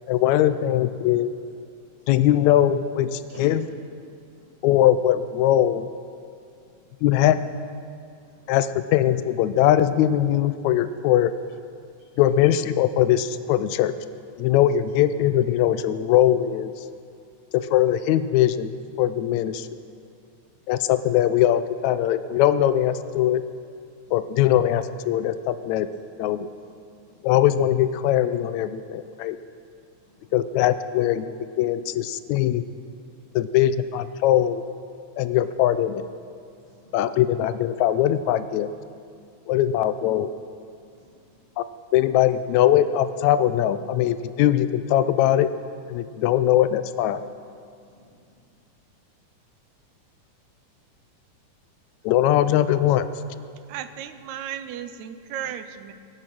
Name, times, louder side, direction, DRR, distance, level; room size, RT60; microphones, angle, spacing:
voice 1, 0.1-1.3 2.1-3.6 4.6-5.9 7.0-7.6 8.5-11.3 12.2-14.0 14.4-16.7 17.5-18.7 19.0-19.7 20.7-23.4 24.1-25.9 26.2-26.5 27.2-29.4 30.3-32.6 33.4-34.6 35.2-36.0 36.9-38.7 39.5-40.3 41.6-41.7 41.9-45.5 45.9-47.2 52.1-53.1, left 12 dB, 80° left, 13 dB, 1.7 m, -21 dB
voice 2, 8.2-8.6 11.9-12.0 24.0-24.2 26.5-26.7 27.0-27.2 30.0-30.3 33.2-33.4 36.6-36.9 40.9-41.3 46.1-46.3 47.8-48.3, equal, 50° right, -7 dB, 6.0 m, -53 dB
voice 3, 53.7-55.9, right 10 dB, 75° right, 11 dB, 1.9 m, -35 dB
22.0 x 8.9 x 6.0 m, 2.3 s
omnidirectional pair, 3.6 m